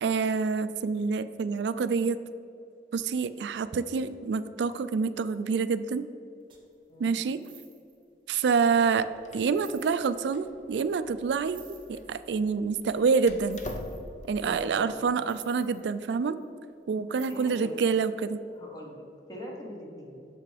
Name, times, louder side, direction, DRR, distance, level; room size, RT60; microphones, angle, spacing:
voice 1, 0.0-2.2 2.9-6.0 7.0-7.4 8.3-9.1 9.3-13.6 14.3-16.4 16.9-18.4, right 5 dB, 80° right, 13 dB, 0.3 m, -27 dB
sound 1, 6.5-6.7 7.3-8.0 8.8-8.9 9.5-10.3 11.3-12.2 13.5-14.3 15.2-16.5 17.1-17.9 18.3-18.4, right 8 dB, 30° right, 0.9 m, -53 dB
Door, 8.8-14.4, left 1 dB, 40° left, 0.6 m, -46 dB
voice 2, 14.5-15.0 17.2-17.8 18.5-20.3, equal, 20° left, -1 dB, 1.1 m, -42 dB
6.7 x 5.9 x 5.0 m, 2.6 s
head